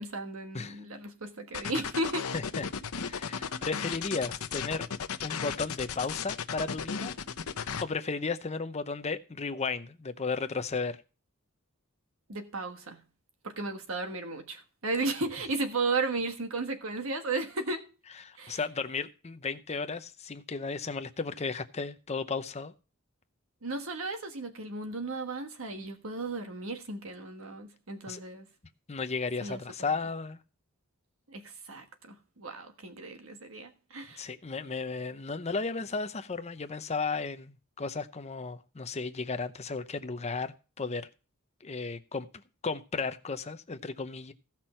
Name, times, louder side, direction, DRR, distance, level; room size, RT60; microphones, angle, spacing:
voice 1, 0.0-2.3 12.3-13.0 13.4-17.8 18.4-18.6 23.6-28.5 29.4-29.6 31.3-34.3, right 3 dB, 70° right, 1.4 m, -35 dB
sound 1, 1.5-7.8, left 6 dB, 90° left, 0.8 m, -35 dB
voice 2, 2.3-2.7 3.0-4.8 5.2-7.1 7.8-11.0 18.2-22.7 28.1-28.2 28.9-30.4 34.2-41.1 41.6-42.3 42.6-44.3, left 4 dB, 30° left, 0.7 m, -34 dB
15.0 x 6.0 x 4.4 m
head